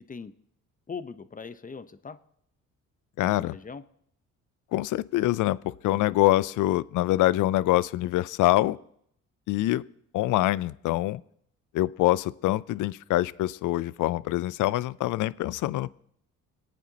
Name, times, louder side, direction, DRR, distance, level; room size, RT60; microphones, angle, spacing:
voice 1, 0.9-2.2 3.2-3.8, left 5 dB, 25° left, 12 dB, 0.8 m, -40 dB
voice 2, 3.2-3.6 4.7-8.8 9.5-9.8 10.1-11.2 11.7-15.9, left 16 dB, 75° left, 19 dB, 0.5 m, -25 dB
25.5 x 9.1 x 2.9 m, 0.68 s
cardioid pair, 80°, 31 cm